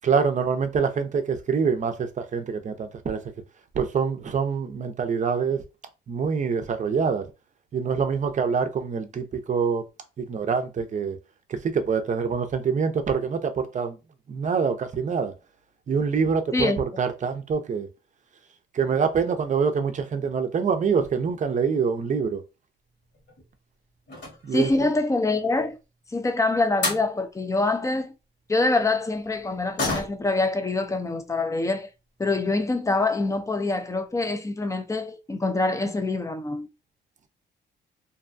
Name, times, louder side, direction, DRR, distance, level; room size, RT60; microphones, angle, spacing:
voice 1, 0.0-3.2 3.7-5.6 6.1-7.3 7.7-9.9 10.2-11.2 11.5-14.0 14.3-15.3 15.9-17.9 18.7-22.4 24.4-24.7, right 6 dB, 40° right, 0.5 m, -25 dB
sound 1, 23.0-23.5 24.0-24.9 26.4-26.5 26.8-27.1 29.8-30.4 30.8-30.9 31.3-31.4 32.2-32.3 32.6-32.7 33.2-33.5 33.8-33.9 34.2-34.3, left 2 dB, 60° left, 1.4 m, -31 dB
voice 2, 24.5-25.8 26.1-28.1 28.5-31.9 32.2-36.7, left 3 dB, 15° left, 0.5 m, -25 dB
2.6 x 2.2 x 2.5 m
cardioid pair, 90°, 20 cm